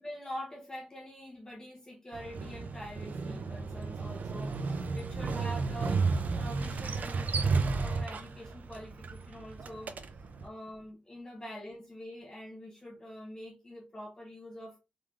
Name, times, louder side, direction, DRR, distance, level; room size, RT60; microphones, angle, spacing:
voice 1, 0.0-6.0 6.3-9.9 10.4-14.8, equal, 20° left, -1 dB, 1.0 m, -45 dB
Motorcycle, 2.1-10.5, right 4 dB, 60° right, 0.5 m, -33 dB
3.7 x 3.2 x 3.6 m, 0.28 s
wide cardioid pair, 175°, 3 cm